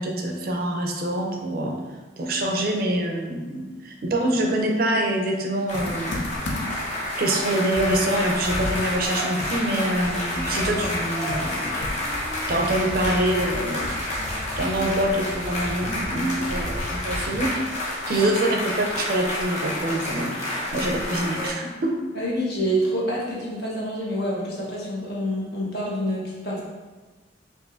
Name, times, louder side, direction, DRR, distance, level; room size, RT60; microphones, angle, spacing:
voice 1, 0.0-1.7 2.2-6.2 7.2-11.6 12.5-14.3 14.6-17.5 18.1-22.0, right 1 dB, 55° right, 2 dB, 0.5 m, -25 dB
Computer keyboard, 5.7-6.9 7.3-7.4 7.7-17.6, left 1 dB, 80° left, 0.6 m, -35 dB
sound 1, 5.7-21.5, left 1 dB, 40° left, 0.7 m, -29 dB
voice 2, 22.1-26.6, equal, 60° left, -5 dB, 1.1 m, -27 dB
4.7 x 2.5 x 2.5 m, 1.3 s
head